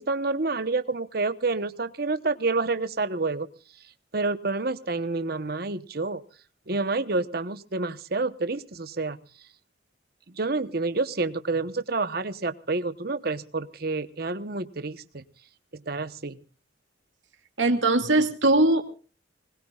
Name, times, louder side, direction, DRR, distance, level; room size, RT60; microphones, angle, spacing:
voice 1, 0.0-3.5 4.1-6.2 6.7-9.2 10.3-15.2 15.7-16.4, right 3 dB, 50° right, 12 dB, 1.0 m, -28 dB
voice 2, 17.6-18.8, right 2 dB, 75° right, 5 dB, 2.4 m, -20 dB
25.5 x 20.0 x 2.4 m, 0.38 s
head